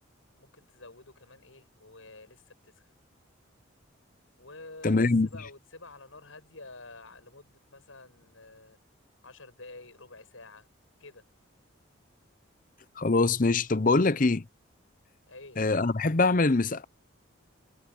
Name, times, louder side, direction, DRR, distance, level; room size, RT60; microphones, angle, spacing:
voice 1, 0.4-2.7 4.4-8.8 9.2-10.7 11.0-11.2 15.3-15.6, left 3 dB, 80° left, 7.8 m, -49 dB
voice 2, 4.8-5.3 13.0-14.4 15.6-16.8, left 3 dB, 40° left, 0.7 m, -23 dB
head